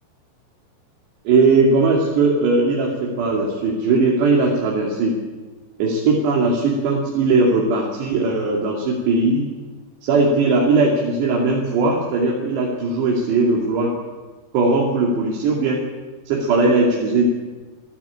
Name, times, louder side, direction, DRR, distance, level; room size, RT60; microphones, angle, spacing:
voice 1, 1.3-5.2 5.8-9.5 10.0-13.9 14.5-15.8 16.3-17.2, right 3 dB, 80° right, -2 dB, 4.7 m, -19 dB
27.0 x 13.5 x 8.6 m, 1.3 s
omnidirectional pair, 4.8 m